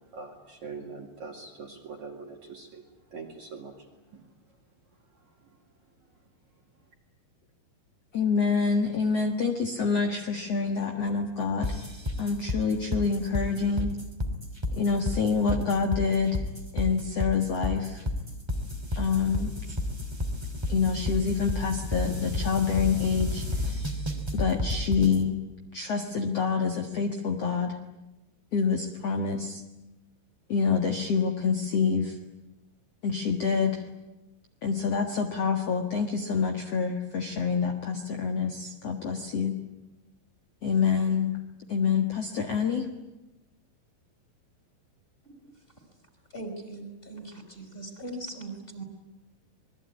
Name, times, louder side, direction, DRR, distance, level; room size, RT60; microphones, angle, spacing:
voice 1, 0.1-2.8 3.1-4.3 5.2-5.5, right 4 dB, 45° right, 2 dB, 2.9 m, -43 dB
voice 2, 8.1-11.7 12.2-13.9 14.7-16.4 16.7-18.0 19.0-19.5 20.7-23.4 24.3-25.3 25.7-27.8 28.5-29.6 30.5-32.1 33.0-33.8 34.6-39.5 40.6-41.4 41.7-42.9, left 5 dB, 65° left, 4 dB, 1.5 m, -27 dB
sound 1, 11.6-25.2, left 1 dB, 10° right, 1.6 m, -31 dB
voice 3, 46.3-48.8, right 2 dB, 10° left, 5 dB, 4.5 m, -40 dB
27.0 x 21.5 x 9.7 m, 0.99 s
omnidirectional pair, 5.6 m